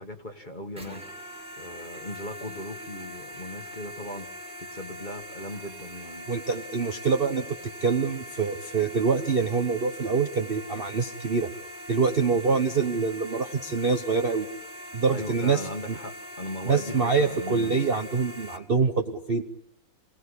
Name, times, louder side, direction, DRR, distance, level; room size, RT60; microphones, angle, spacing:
voice 1, 0.0-4.3 4.6-6.3 15.1-17.7, left 1 dB, 25° left, 6 dB, 1.7 m, -38 dB
sound 1, 0.7-18.6, equal, 5° right, 2.3 m, -42 dB
voice 2, 6.3-11.5 11.9-14.5 14.9-16.0 16.6-19.4, right 5 dB, 40° right, 6 dB, 1.0 m, -25 dB
27.0 x 17.0 x 9.9 m, 0.79 s
omnidirectional pair, 2.0 m